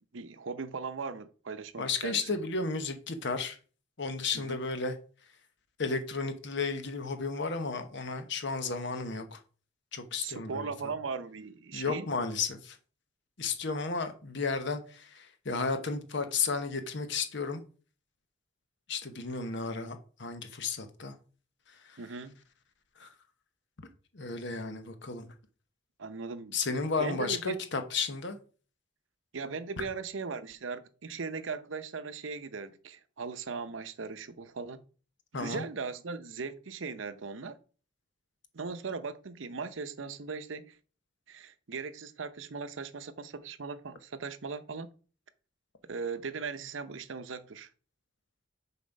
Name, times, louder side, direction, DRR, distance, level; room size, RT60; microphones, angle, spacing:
voice 1, 0.1-2.4 4.3-4.6 10.2-12.1 22.0-22.4 26.0-26.6 27.0-27.6 29.3-34.8 35.3-37.6 38.5-40.8 41.3-44.9 45.9-47.7, right 4 dB, 75° right, 0.7 m, -38 dB
voice 2, 1.8-3.6 4.0-4.9 5.8-9.4 9.9-10.7 11.7-12.8 13.4-17.6 18.9-21.1 21.9-22.0 23.0-23.1 24.1-25.3 26.5-28.4 29.8-29.9 35.3-35.6, left 4 dB, 65° left, 1.0 m, -33 dB
7.1 x 4.2 x 5.3 m
head